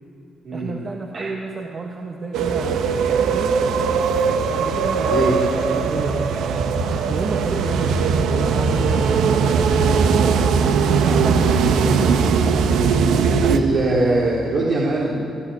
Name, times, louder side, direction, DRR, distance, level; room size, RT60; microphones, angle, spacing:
voice 1, 0.5-3.6 4.5-5.2 5.5-6.6 7.1-12.2, right 3 dB, 40° right, 1 dB, 1.9 m, -31 dB
sound 1, 2.3-13.6, right 5 dB, 85° right, 1.4 m, -19 dB
voice 2, 13.4-15.2, right 3 dB, 65° right, -6 dB, 3.9 m, -21 dB
29.0 x 12.0 x 9.1 m, 2.5 s
cardioid pair, 90°, 0 cm